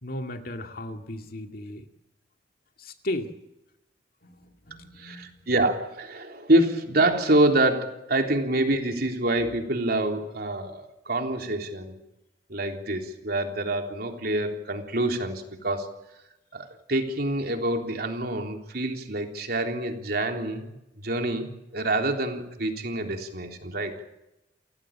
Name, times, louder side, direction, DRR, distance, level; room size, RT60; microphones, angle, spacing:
voice 1, 0.0-1.9 2.8-3.3 4.2-5.4, left 1 dB, 55° left, 5 dB, 2.3 m, -35 dB
voice 2, 5.0-12.0 12.5-15.9 16.5-20.8 21.0-23.9, right 1 dB, 60° right, 4 dB, 3.7 m, -26 dB
30.0 x 16.0 x 8.8 m, 0.93 s
head